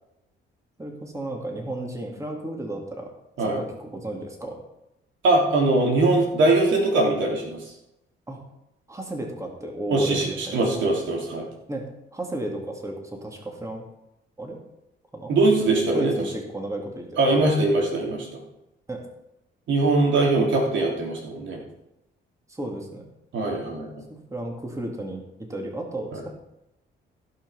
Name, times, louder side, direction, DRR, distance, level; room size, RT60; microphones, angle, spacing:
voice 1, 0.8-3.1 3.4-4.6 8.3-8.4 8.9-10.8 11.7-13.8 14.4-14.6 15.1-15.3 15.9-17.5 18.9-19.1 22.5-23.0 24.1-25.2 25.5-26.3, right 1 dB, 15° right, 1 dB, 2.7 m, -33 dB
voice 2, 5.2-7.6 9.9-11.5 15.3-16.1 17.2-18.3 19.7-21.6 23.3-24.0 26.1-26.2, right 2 dB, 70° right, 0 dB, 3.2 m, -21 dB
16.0 x 6.0 x 5.7 m, 0.87 s
cardioid pair, 90°, 20 cm